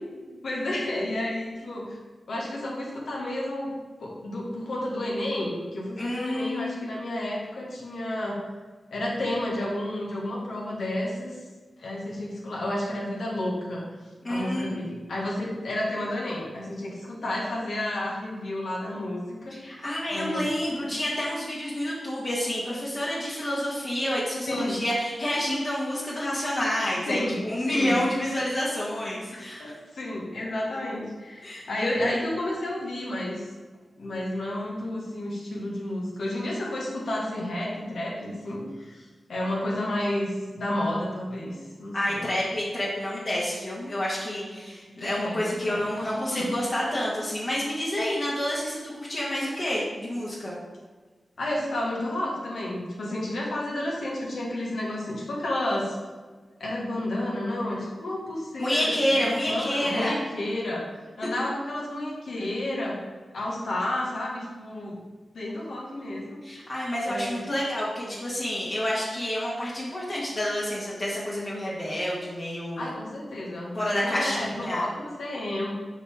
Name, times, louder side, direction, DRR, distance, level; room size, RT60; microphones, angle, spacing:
voice 1, 0.4-2.0 2.3-3.7 4.0-8.4 8.9-11.4 11.8-13.8 14.3-19.6 20.1-20.5 20.8-21.0 24.5-24.8 27.1-27.9 29.3-33.4 34.0-39.0 39.3-42.3 45.0-46.5 51.4-55.9 56.6-60.9 61.2-63.0 63.3-65.0 65.3-66.4 67.1-67.5 68.0-68.1 72.8-75.7, left 1 dB, 85° left, -3 dB, 1.6 m, -31 dB
voice 2, 6.0-7.0 14.2-14.9 19.5-29.6 31.4-31.7 41.9-50.6 58.6-60.2 66.4-72.9 73.7-74.8, left 1 dB, 55° left, -7 dB, 1.7 m, -29 dB
7.9 x 4.8 x 3.7 m, 1.3 s
cardioid pair, 55°, 0 cm